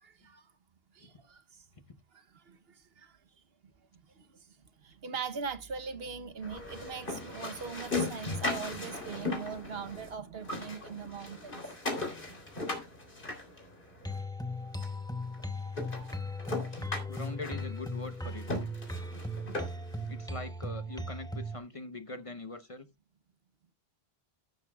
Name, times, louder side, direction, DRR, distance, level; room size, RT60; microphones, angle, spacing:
voice 1, 0.0-0.5 0.9-1.6 2.1-3.2 4.1-11.8 19.4-19.5, right 6 dB, 70° right, 1.2 m, -41 dB
sound 1, 6.4-10.1 10.4-14.1 14.8-14.9 15.3-15.4 15.7-20.0, left 2 dB, 55° left, 3.6 m, -38 dB
sound 2, 14.0-21.6, left 1 dB, 5° left, 0.8 m, -38 dB
voice 2, 17.1-18.5 20.1-22.9, left 2 dB, 35° left, 0.9 m, -42 dB
13.0 x 11.0 x 2.3 m
omnidirectional pair, 1.1 m